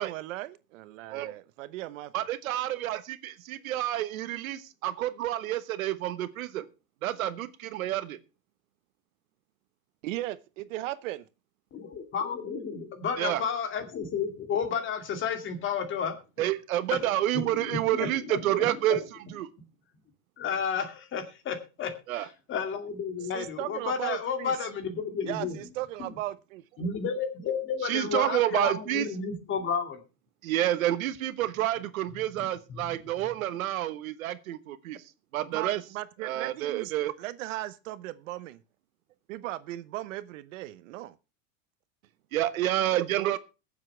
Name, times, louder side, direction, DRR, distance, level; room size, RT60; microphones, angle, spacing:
voice 1, 0.0-2.1 10.0-11.3 23.2-24.6 25.3-26.6 35.5-36.9 37.2-38.6 39.3-41.1 42.9-43.4, right 16 dB, 65° right, 1.0 m, -37 dB
voice 2, 2.1-6.7 7.0-8.2 13.2-13.4 16.4-19.0 19.3-19.5 22.1-22.3 27.8-29.1 30.4-35.0 35.3-35.8 36.2-37.1 42.3-43.4, right 13 dB, 85° right, 1.2 m, -29 dB
voice 3, 11.7-16.1 16.9-17.0 17.3-19.0 20.4-25.6 26.0-26.1 26.8-30.0 32.4-33.0, left 6 dB, 30° left, 2.3 m, -32 dB
21.5 x 7.5 x 3.3 m
supercardioid pair, 140°, 40 cm